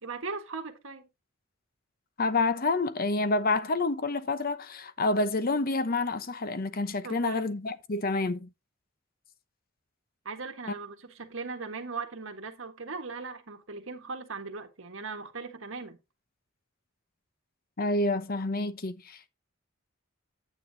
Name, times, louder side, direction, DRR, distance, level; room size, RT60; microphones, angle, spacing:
voice 1, 0.0-1.1 7.0-7.5 10.2-16.0, right 4 dB, 70° right, 1.6 m, -39 dB
voice 2, 2.2-8.5 17.8-19.3, left 3 dB, 45° left, 0.9 m, -28 dB
9.3 x 8.9 x 2.8 m
head